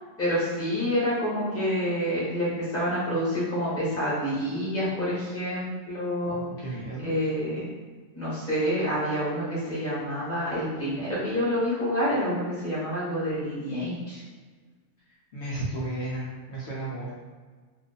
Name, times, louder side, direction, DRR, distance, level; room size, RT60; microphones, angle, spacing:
voice 1, 0.2-6.4 7.0-7.7 8.1-14.2, equal, 10° left, -9 dB, 1.3 m, -28 dB
voice 2, 6.3-7.1 15.3-17.1, right 2 dB, 65° left, -7 dB, 0.9 m, -34 dB
2.6 x 2.5 x 3.9 m, 1.5 s
omnidirectional pair, 1.3 m